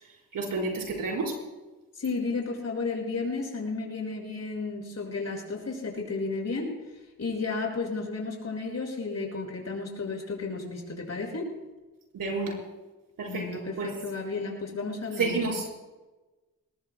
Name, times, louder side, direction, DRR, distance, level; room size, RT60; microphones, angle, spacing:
voice 1, 0.3-1.3 12.1-12.6 13.2-13.4 13.8-13.9 15.2-15.6, right 3 dB, 85° right, -1 dB, 4.8 m, -29 dB
voice 2, 1.9-6.7 7.2-11.5 13.3-15.4, left 3 dB, 50° left, 0 dB, 6.3 m, -33 dB
22.0 x 19.5 x 2.3 m, 1.1 s
cardioid pair, 70°, 32 cm